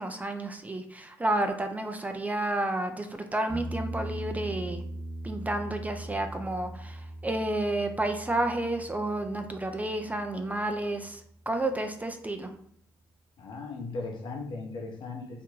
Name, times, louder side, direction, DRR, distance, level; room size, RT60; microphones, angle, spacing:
voice 1, 0.0-4.8 5.2-11.2 11.5-12.5, right 1 dB, 15° right, 6 dB, 0.3 m, -31 dB
sound 1, 3.5-11.1 14.1-14.2, right 1 dB, 5° left, 0.8 m, -40 dB
voice 2, 13.4-15.4, left 3 dB, 55° left, 1 dB, 0.7 m, -37 dB
2.4 x 2.2 x 3.0 m, 0.65 s
hypercardioid pair, 50°, 10 cm